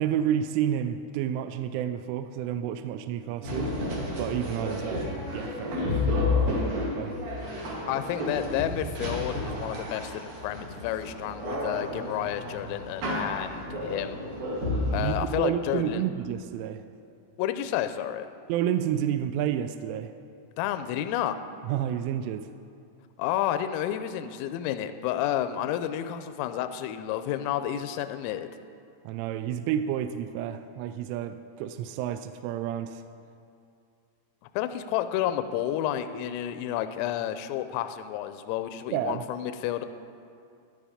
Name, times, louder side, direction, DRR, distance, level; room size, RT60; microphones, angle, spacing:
voice 1, 0.0-3.7 4.2-6.0 6.3-7.2 14.9-16.8 18.5-20.1 21.6-22.5 29.1-33.0 38.9-39.2, right 10 dB, 85° right, 9 dB, 2.8 m, -30 dB
sound 1, 3.4-15.0, left 2 dB, 50° right, 3.4 m, -31 dB
voice 2, 7.9-14.2 14.9-16.0 17.4-18.3 20.6-21.4 23.2-28.5 34.5-39.9, left 11 dB, 85° left, 9 dB, 3.2 m, -30 dB
14.0 x 11.5 x 5.0 m, 2.5 s
omnidirectional pair, 6.0 m